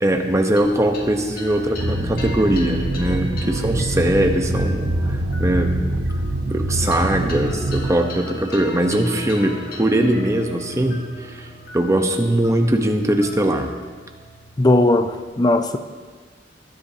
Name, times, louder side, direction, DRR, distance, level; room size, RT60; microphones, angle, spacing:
voice 1, 0.0-5.7 6.5-11.0 11.3-11.5 11.7-13.7, right 1 dB, 15° right, 4 dB, 0.9 m, -21 dB
sound 1, 0.6-15.3, equal, 55° left, 1.7 m, -36 dB
sound 2, 1.8-7.9, right 1 dB, 70° right, 1.0 m, -24 dB
voice 2, 14.6-15.8, left 2 dB, 20° left, 9 dB, 0.5 m, -17 dB
19.5 x 10.0 x 2.9 m, 1.5 s
head